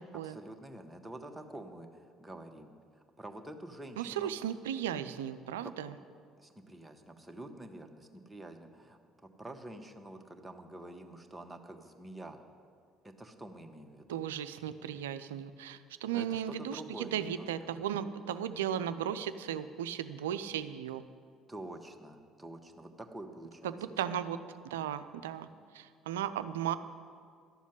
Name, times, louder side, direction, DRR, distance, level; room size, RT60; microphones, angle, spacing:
voice 1, 0.2-2.7 3.2-4.3 5.6-5.7 6.4-12.4 13.0-14.2 16.1-17.4 21.5-24.2, right 1 dB, 10° right, 4 dB, 1.5 m, -47 dB
voice 2, 4.0-6.0 14.1-21.0 23.6-24.4 24.6-25.5 25.7-26.8, right 10 dB, 80° right, 12 dB, 0.5 m, -36 dB
12.0 x 7.2 x 9.8 m, 2.1 s
hypercardioid pair, 55°, 0 cm